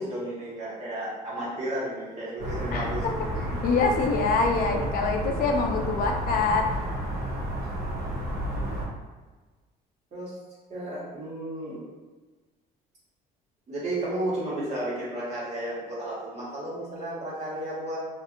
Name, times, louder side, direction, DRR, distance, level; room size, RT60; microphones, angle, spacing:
voice 1, 0.0-3.3 10.1-10.4 10.7-11.8 13.7-18.0, right 1 dB, 40° right, -8 dB, 1.3 m, -33 dB
sound 1, 2.4-8.9, equal, 60° right, 0.9 m, -31 dB
voice 2, 3.6-6.7, left 4 dB, 60° left, 2 dB, 0.4 m, -25 dB
2.7 x 2.5 x 2.4 m, 1.3 s
cardioid pair, 110°, 17 cm